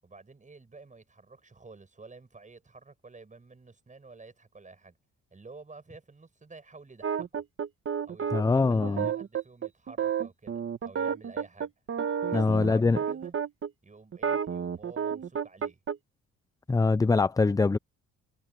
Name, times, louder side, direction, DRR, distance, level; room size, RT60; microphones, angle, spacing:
voice 1, 0.0-5.0 5.3-7.4 8.0-11.7 12.2-13.4 13.8-15.8, right 3 dB, 25° right, 7.8 m, -50 dB
sound 1, 7.0-13.7 14.1-16.0, right 7 dB, 45° right, 1.3 m, -31 dB
voice 2, 8.3-9.1 12.3-13.0 16.7-17.8, left 3 dB, 10° left, 0.5 m, -23 dB
cardioid pair, 90°, 30 cm